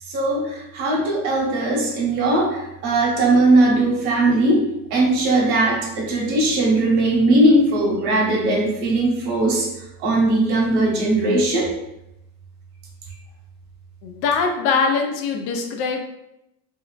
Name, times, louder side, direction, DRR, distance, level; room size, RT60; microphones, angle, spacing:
voice 1, 0.1-4.6 4.9-9.7 10.0-11.7, right 2 dB, 55° right, -3 dB, 1.1 m, -19 dB
voice 2, 14.0-16.0, left 5 dB, 80° left, 4 dB, 0.6 m, -22 dB
3.1 x 2.8 x 2.4 m, 0.85 s
cardioid pair, 170°, 35 cm